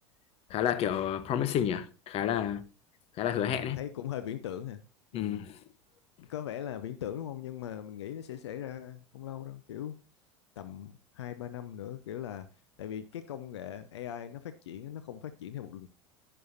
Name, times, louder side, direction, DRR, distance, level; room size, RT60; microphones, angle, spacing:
voice 1, 0.5-2.6 3.2-3.8 5.1-5.6, left 10 dB, 40° left, 1.0 m, -30 dB
voice 2, 3.5-4.8 5.1-5.5 6.2-10.0 10.6-12.5 12.8-15.9, left 10 dB, 65° left, 0.7 m, -40 dB
11.0 x 10.0 x 2.7 m
figure-of-eight pair, 75°, 15 cm